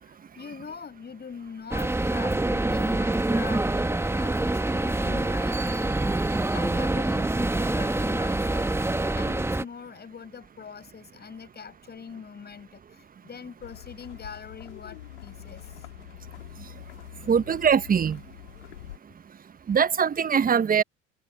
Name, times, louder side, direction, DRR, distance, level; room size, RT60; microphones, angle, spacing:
voice 1, 0.0-15.8, left 6 dB, 30° left, 6.6 m, -43 dB
sound 1, 1.7-9.6, right 2 dB, 5° right, 1.8 m, -26 dB
sound 2, 13.6-19.0, left 14 dB, 75° left, 3.6 m, -45 dB
voice 2, 17.3-18.2 19.7-20.8, right 7 dB, 25° right, 1.1 m, -22 dB
hypercardioid pair, 75°, 35 cm